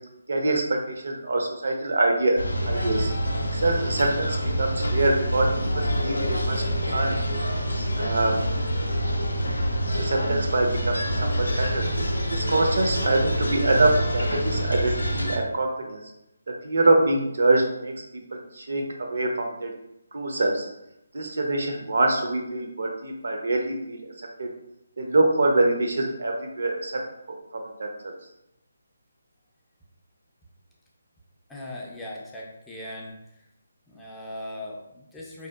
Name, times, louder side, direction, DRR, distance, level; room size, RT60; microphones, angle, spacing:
voice 1, 0.3-2.4 2.6-3.1 3.5-6.6 6.9-7.2 8.0-8.4 9.9-11.9 12.3-16.0 16.6-17.9 18.5-19.7 20.1-20.7 21.1-24.0 24.4-24.5 25.0-27.0 27.5-28.1, right 2 dB, 65° right, 2 dB, 0.5 m, -24 dB
sound 1, 2.4-15.4, equal, 90° left, 0.4 m, -26 dB
voice 2, 31.5-33.2 33.9-35.5, left 1 dB, 10° left, -4 dB, 0.3 m, -39 dB
2.7 x 2.0 x 2.2 m, 0.84 s
figure-of-eight pair, 155°, 0 cm